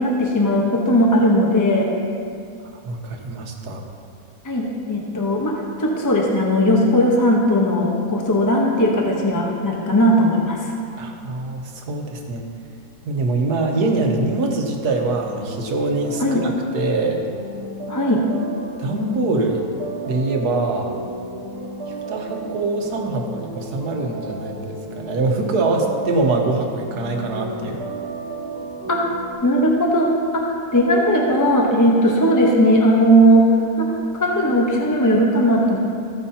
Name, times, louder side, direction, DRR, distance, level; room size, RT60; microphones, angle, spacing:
voice 1, 0.0-1.9 4.4-10.6 16.2-16.4 17.9-18.2 28.9-29.1 29.4-33.5 33.8-35.8, equal, 15° left, -1 dB, 0.8 m, -18 dB
voice 2, 2.8-3.9 11.0-12.5 13.0-17.2 18.8-19.6 20.0-20.9 22.1-27.8, right 3 dB, 85° right, 2 dB, 1.6 m, -23 dB
sound 1, 15.0-29.3, right 1 dB, 70° right, 2.3 m, -34 dB
14.5 x 9.3 x 2.8 m, 2.4 s
omnidirectional pair, 1.7 m